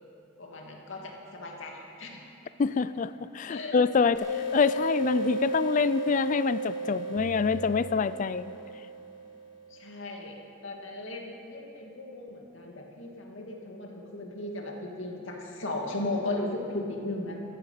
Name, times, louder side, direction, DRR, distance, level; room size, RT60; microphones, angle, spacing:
voice 1, 0.4-2.1 3.5-3.7 9.7-10.4 10.6-17.4, left 2 dB, 80° left, 0 dB, 2.3 m, -36 dB
voice 2, 2.6-8.5, left 5 dB, 40° left, 15 dB, 0.3 m, -26 dB
sound 1, 4.1-9.5, right 2 dB, 60° left, 2.9 m, -34 dB
sound 2, 7.2-9.0, equal, 10° right, 1.7 m, -45 dB
14.5 x 14.0 x 5.7 m, 2.9 s
head